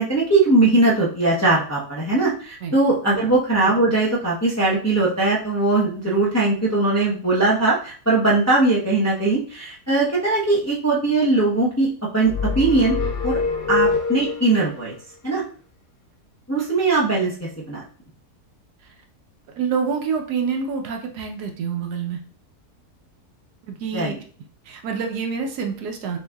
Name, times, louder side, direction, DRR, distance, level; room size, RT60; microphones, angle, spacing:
voice 1, 0.0-13.0 13.2-13.4 13.7-14.9 15.2-15.4 16.5-17.8 23.9-24.1, right 2 dB, 20° left, -6 dB, 0.5 m, -20 dB
sound 1, 12.3-14.7, left 4 dB, 85° left, 1.2 m, -24 dB
voice 2, 19.6-22.2 23.6-24.2 24.7-26.2, right 6 dB, 85° right, 3 dB, 1.3 m, -27 dB
6.3 x 2.6 x 2.3 m, 0.44 s
omnidirectional pair, 1.7 m